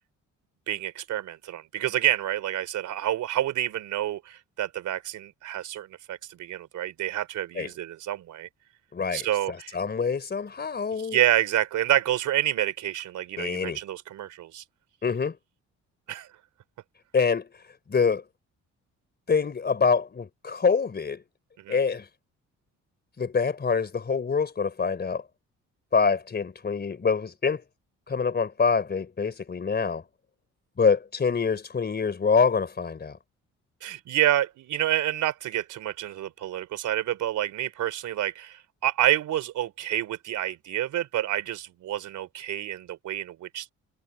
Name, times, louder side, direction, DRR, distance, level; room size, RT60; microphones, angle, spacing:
voice 1, 0.7-8.5 9.1-9.8 11.0-14.6 16.1-16.3 21.6-21.8 33.8-43.7, right 12 dB, 80° right, 3.6 m, -28 dB
voice 2, 8.9-11.2 13.4-13.8 15.0-15.4 17.1-17.5 17.9-18.2 19.3-21.2 21.7-22.1 23.2-25.2 25.9-27.6 28.1-30.0 30.8-33.2, left 5 dB, 35° left, 3.6 m, -25 dB
cardioid pair, 90°, 30 cm